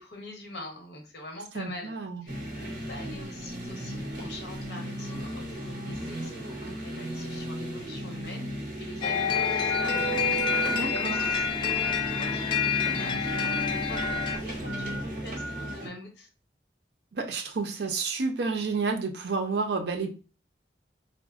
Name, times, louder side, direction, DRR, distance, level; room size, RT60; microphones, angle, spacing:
voice 1, 0.0-1.9 2.2-10.1 10.3-16.3, left 1 dB, 75° left, 0.9 m, -44 dB
voice 2, 1.6-2.2 10.7-11.2 17.1-20.2, right 4 dB, 70° right, 0.5 m, -30 dB
sound 1, 2.3-15.9, right 1 dB, 50° right, 0.9 m, -35 dB
sound 2, 9.0-14.4, left 6 dB, 30° left, 0.3 m, -28 dB
3.7 x 2.0 x 2.3 m
head